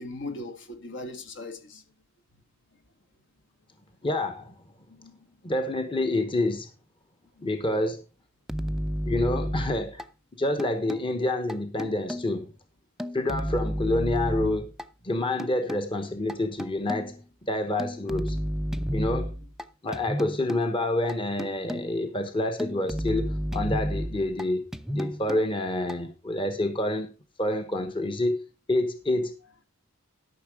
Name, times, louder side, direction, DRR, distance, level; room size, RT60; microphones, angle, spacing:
voice 1, 0.0-1.8 4.9-5.2 9.4-9.6, left 2 dB, 65° left, 1.6 m, -39 dB
voice 2, 4.0-4.5 5.4-6.7 7.4-8.0 9.1-10.0 10.4-12.5 13.1-14.7 15.0-17.2 17.4-18.4 18.9-19.3 19.8-24.6 24.9-27.1 27.4-28.4 28.7-29.3, left 1 dB, 25° left, 1.0 m, -28 dB
sound 1, 8.5-10.0 10.6-11.1 11.5-12.4 13.0-14.8 15.4-15.9 16.3-17.2 17.8-19.6 19.9-20.7 21.1-22.0 22.6-24.4 24.7-25.5 25.9-26.0, equal, ahead, 0.5 m, -31 dB
12.5 x 5.9 x 4.8 m
head